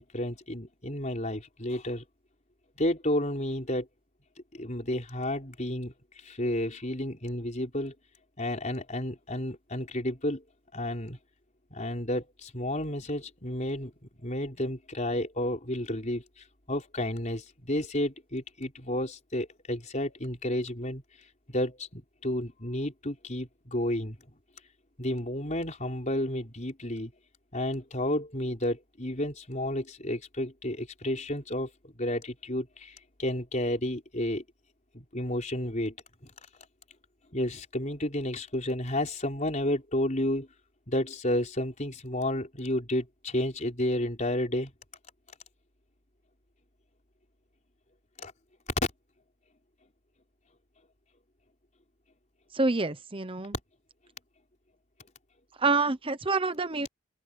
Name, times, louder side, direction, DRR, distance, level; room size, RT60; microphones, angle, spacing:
voice 1, 0.0-2.0 2.8-3.9 4.5-7.9 8.4-10.4 10.7-11.2 11.7-21.0 21.5-24.2 25.0-27.1 27.5-34.4 34.9-36.0 36.2-36.3 37.3-40.5 40.9-44.7 48.2-48.3, left 1 dB, 35° left, 4.8 m, -31 dB
voice 2, 52.5-53.5 55.6-56.9, right 3 dB, 25° right, 0.9 m, -27 dB
head